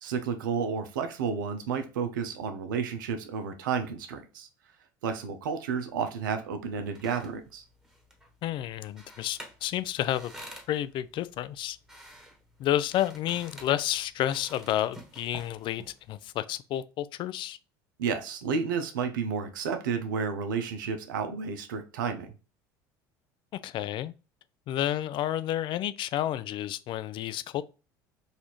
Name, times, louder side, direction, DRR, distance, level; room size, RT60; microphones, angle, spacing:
voice 1, 0.0-4.5 5.0-7.6 18.0-22.3, right 6 dB, 90° right, 0.6 m, -31 dB
sound 1, 6.6-16.3, right 1 dB, 5° right, 1.3 m, -50 dB
voice 2, 8.4-10.3 10.7-11.8 12.6-15.8 16.1-17.6 23.6-24.1 24.7-27.6, left 12 dB, 50° left, 0.4 m, -30 dB
4.0 x 2.5 x 3.0 m
hypercardioid pair, 85°, 10 cm